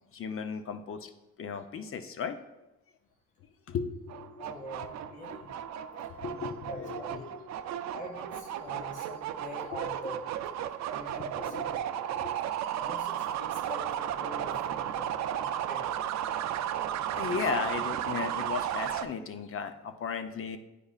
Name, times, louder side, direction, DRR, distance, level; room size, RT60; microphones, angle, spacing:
voice 1, 0.1-1.1 1.4-2.4 3.7-4.5 5.9-7.5 11.4-12.3 17.1-20.6, left 6 dB, 45° left, 8 dB, 0.7 m, -36 dB
sound 1, 4.1-19.0, right 10 dB, 65° right, 0.5 m, -34 dB
voice 2, 4.4-5.5 6.6-7.2 7.9-10.2 10.9-11.6 11.9-12.0 12.8-15.9, left 1 dB, 25° left, -2 dB, 1.9 m, -44 dB
9.9 x 4.8 x 2.4 m, 0.96 s
cardioid pair, 90°, 30 cm